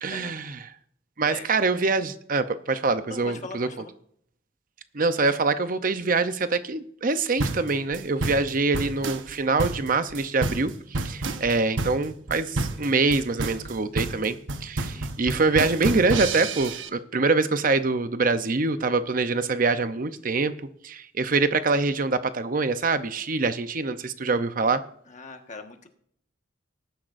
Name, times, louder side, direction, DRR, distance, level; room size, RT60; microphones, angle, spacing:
voice 1, 0.0-0.6 1.2-3.7 4.9-20.5 20.8-24.8, right 3 dB, 45° right, 11 dB, 0.7 m, -25 dB
voice 2, 3.1-3.9 14.8-15.1 25.1-25.9, left 3 dB, 40° left, 5 dB, 1.4 m, -40 dB
sound 1, 7.4-16.9, right 2 dB, 70° right, 1.0 m, -30 dB
19.5 x 10.5 x 2.6 m, 0.65 s
head